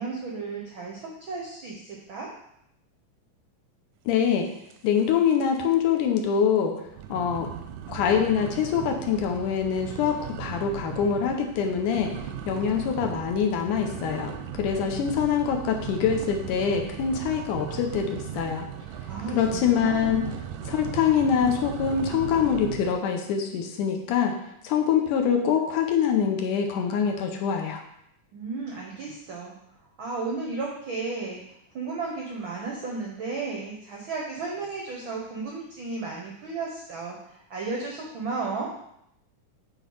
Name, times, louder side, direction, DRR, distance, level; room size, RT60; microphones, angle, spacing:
voice 1, 0.0-2.3 19.1-20.3 28.3-29.5 30.0-38.7, right 4 dB, 75° right, -2 dB, 1.1 m, -34 dB
voice 2, 4.1-4.5 4.8-6.7 7.1-7.5 7.9-12.1 12.5-18.7 19.3-20.3 20.7-27.8, left 7 dB, 75° left, 3 dB, 2.3 m, -24 dB
sound 1, 4.7-5.1 5.4-5.8 6.2-6.3 6.9-23.0, right 9 dB, 90° right, 2.3 m, -37 dB
8.1 x 3.9 x 5.4 m, 0.77 s
omnidirectional pair, 3.7 m